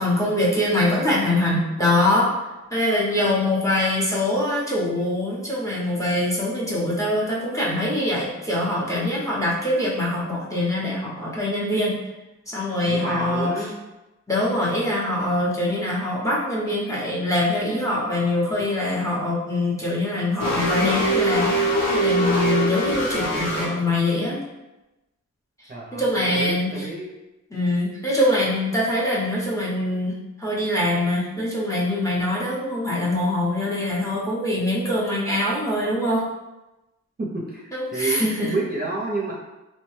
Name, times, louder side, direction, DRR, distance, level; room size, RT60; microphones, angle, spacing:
voice 1, 0.0-2.3 2.7-11.9 12.5-13.7 14.3-24.4 25.9-26.9 27.5-30.1 30.4-36.2 37.7-38.5, left 1 dB, 10° left, -5 dB, 0.7 m, -23 dB
voice 2, 12.9-13.8 25.7-27.1 37.2-39.3, right 2 dB, 35° right, -5 dB, 0.6 m, -30 dB
sound 1, 20.4-23.6, right 1 dB, 60° left, 1.0 m, -22 dB
3.1 x 2.1 x 3.1 m, 1.0 s
wide cardioid pair, 110°, 29 cm